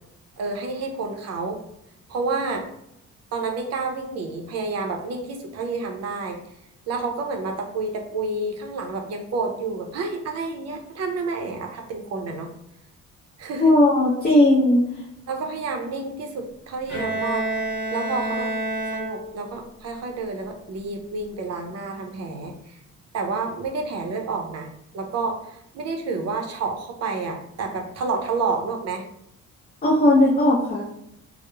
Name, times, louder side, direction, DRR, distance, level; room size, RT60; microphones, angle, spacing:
voice 1, 0.4-1.6 2.1-2.7 3.3-6.4 6.9-12.5 13.4-13.8 15.3-18.5 18.9-22.8 23.1-24.7 24.9-29.0, right 3 dB, 55° right, 3 dB, 0.5 m, -29 dB
voice 2, 13.6-14.9 29.8-30.8, left 1 dB, 30° left, -4 dB, 0.6 m, -17 dB
Bowed string instrument, 16.9-19.6, right 1 dB, 5° right, 1.3 m, -28 dB
2.9 x 2.0 x 2.2 m, 0.79 s
cardioid pair, 90°, 30 cm